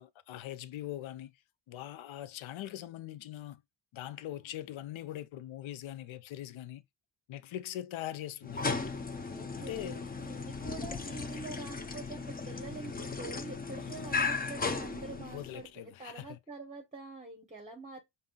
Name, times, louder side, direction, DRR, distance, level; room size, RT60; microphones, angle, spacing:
voice 1, 0.0-1.3 1.7-3.6 3.9-6.8 7.3-8.8 9.6-10.1 13.8-14.2 15.1-16.4, left 13 dB, 70° left, 0.6 m, -42 dB
sound 1, 8.4-15.6, left 4 dB, 20° left, 0.5 m, -36 dB
voice 2, 9.3-10.0 10.3-15.7 16.0-18.0, right 4 dB, 15° right, 0.8 m, -46 dB
5.3 x 2.7 x 2.3 m
cardioid pair, 105°, 49 cm